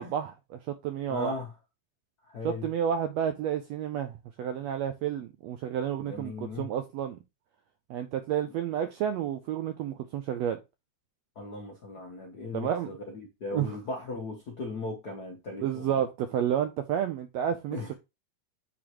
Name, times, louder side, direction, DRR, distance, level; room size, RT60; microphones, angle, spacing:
voice 1, 0.0-1.3 2.4-7.2 7.9-10.6 12.5-12.9 13.5-13.8 15.6-17.9, right 9 dB, 85° right, 1.5 m, -31 dB
voice 2, 1.1-1.5 2.3-2.7 6.0-6.7 11.3-16.0 17.7-17.9, left 3 dB, 80° left, 0.8 m, -38 dB
8.6 x 4.0 x 3.0 m
omnidirectional pair, 3.5 m